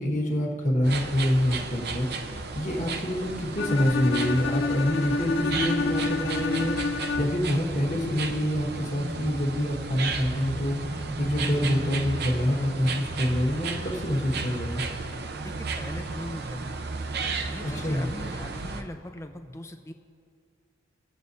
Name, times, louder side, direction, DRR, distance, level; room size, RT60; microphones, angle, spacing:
voice 1, 0.0-14.8 17.6-18.1, left 1 dB, 35° left, -3 dB, 1.5 m, -27 dB
sound 1, 0.8-18.8, right 3 dB, 50° right, 0.6 m, -34 dB
Bowed string instrument, 3.6-7.6, left 3 dB, 65° left, 0.4 m, -29 dB
voice 2, 15.4-16.8 17.5-19.9, left 1 dB, 15° left, 6 dB, 0.5 m, -40 dB
23.5 x 8.0 x 2.7 m, 2.3 s
head